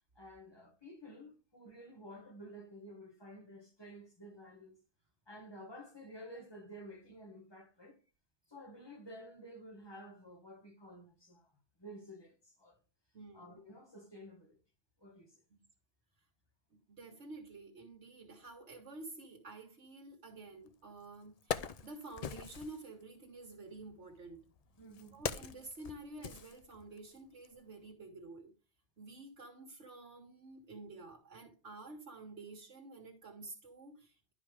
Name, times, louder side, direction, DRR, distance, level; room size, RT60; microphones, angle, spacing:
voice 1, 0.1-4.8 5.3-8.0 8.5-12.8 13.3-14.6 15.0-15.4 24.8-25.2, equal, 20° left, 1.6 m, -52 dB
voice 2, 13.1-13.6 15.5-15.6 16.9-24.4 25.1-28.5 29.0-34.3, right 2 dB, 75° right, 1.7 m, -50 dB
Wood, 20.7-20.8 21.2-22.8 23.8-27.1 27.4-27.6, left 7 dB, 55° left, 0.4 m, -42 dB
11.5 x 4.9 x 3.4 m
omnidirectional pair, 1.2 m